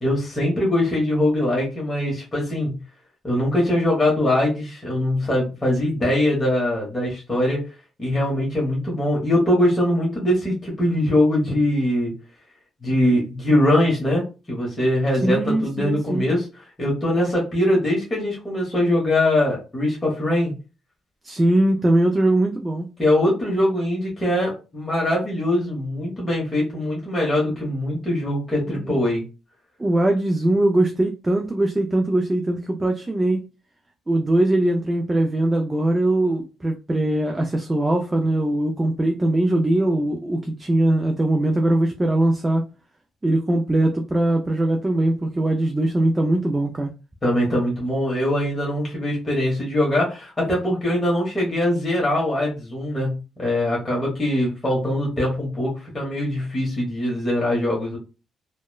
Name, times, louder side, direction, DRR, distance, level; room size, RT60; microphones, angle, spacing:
voice 1, 0.0-2.8 3.2-7.6 8.0-12.1 12.8-16.5 16.8-20.5 23.0-29.2 47.2-58.0, left 1 dB, 25° left, 1.0 m, -22 dB
voice 2, 15.2-16.3 21.2-22.9 28.7-29.0 29.8-33.4 34.1-42.6 43.2-46.9, right 1 dB, 15° right, 0.4 m, -21 dB
2.9 x 2.1 x 2.2 m
cardioid pair, 90°, 0 cm